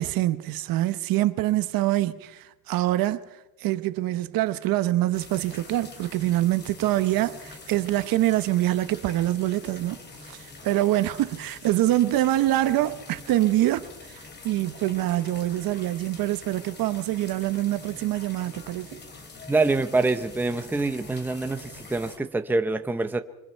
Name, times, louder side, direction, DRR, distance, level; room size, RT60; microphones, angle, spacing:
voice 1, 0.0-3.2 3.6-10.0 10.3-13.9 14.4-19.0, right 15 dB, 60° right, 1.1 m, -25 dB
sound 1, 5.1-22.2, left 3 dB, 25° left, 3.0 m, -45 dB
voice 2, 19.5-23.2, right 3 dB, 5° right, 0.8 m, -25 dB
26.0 x 25.0 x 4.6 m
cardioid pair, 155°, 39 cm